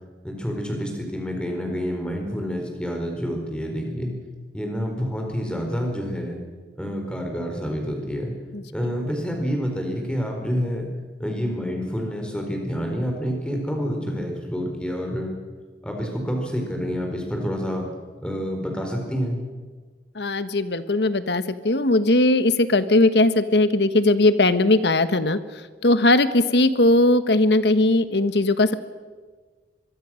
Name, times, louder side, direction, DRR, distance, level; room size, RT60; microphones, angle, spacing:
voice 1, 0.2-4.1 4.5-6.4 6.8-8.3 8.7-10.9 11.2-15.4 15.8-17.9 18.2-19.4, equal, 5° left, 2 dB, 4.6 m, -28 dB
voice 2, 20.2-25.4 25.8-28.7, left 2 dB, 75° left, 12 dB, 1.3 m, -19 dB
24.5 x 23.0 x 6.4 m, 1.4 s
head